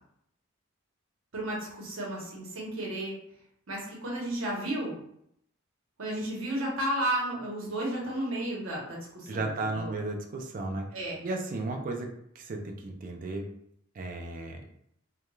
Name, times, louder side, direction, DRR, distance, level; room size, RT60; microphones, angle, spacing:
voice 1, 1.3-3.2 3.7-4.9 6.0-9.9 10.9-11.2, right 1 dB, 75° right, -3 dB, 0.9 m, -33 dB
voice 2, 9.3-10.9 11.2-12.1 12.4-13.5 14.0-14.6, right 2 dB, 40° right, 3 dB, 0.3 m, -34 dB
2.2 x 2.2 x 2.9 m, 0.73 s
head